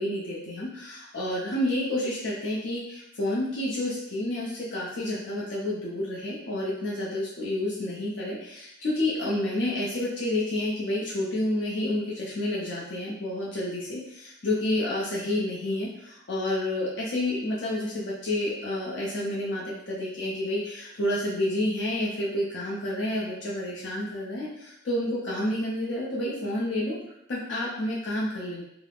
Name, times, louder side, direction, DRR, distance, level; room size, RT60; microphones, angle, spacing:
voice 1, 0.0-27.0 27.3-28.6, left 1 dB, 65° left, -6 dB, 0.5 m, -29 dB
2.3 x 2.0 x 3.3 m, 0.81 s
head